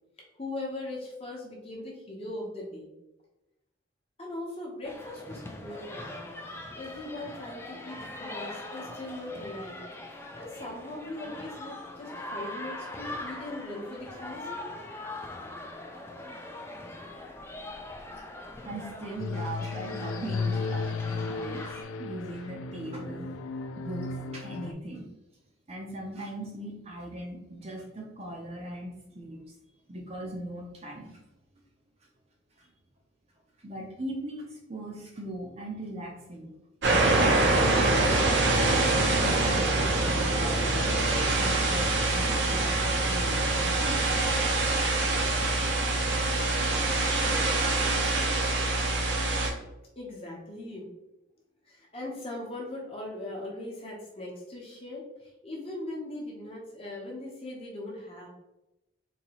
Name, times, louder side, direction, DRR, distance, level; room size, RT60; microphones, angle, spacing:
voice 1, 0.3-2.9 4.2-6.4 6.7-9.8 10.4-14.5 50.0-50.9 51.6-58.3, left 2 dB, 30° left, -3 dB, 0.9 m, -40 dB
sound 1, 4.8-21.8, left 1 dB, 10° left, 0.4 m, -41 dB
voice 2, 18.6-21.6 22.0-23.3 23.8-25.1 25.7-29.5 29.9-31.2 32.6-32.7 33.6-36.5 36.8-38.0 38.8-44.1 44.6-44.8 45.9-46.3, right 1 dB, 30° right, -1 dB, 0.6 m, -39 dB
sound 2, 19.2-24.7, left 4 dB, 90° left, 0.3 m, -34 dB
sound 3, 36.8-49.5, right 2 dB, 65° right, 0.7 m, -25 dB
4.0 x 2.9 x 2.9 m, 0.96 s
head